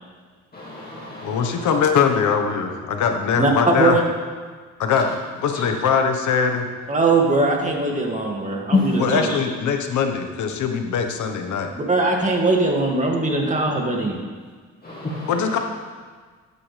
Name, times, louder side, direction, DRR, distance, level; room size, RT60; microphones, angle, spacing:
voice 1, 0.5-1.7 5.0-5.1 5.5-5.7 8.7-9.4 14.8-15.6, left 2 dB, 30° left, -6 dB, 2.3 m, -27 dB
voice 2, 1.2-4.0 4.8-5.1 5.4-6.6 9.0-11.7 15.3-15.6, left 6 dB, 75° left, 5 dB, 1.3 m, -21 dB
voice 3, 6.9-9.3 11.8-14.2, right 3 dB, 25° right, 0 dB, 2.2 m, -21 dB
14.0 x 9.6 x 3.4 m, 1.5 s
cardioid pair, 90°, 30 cm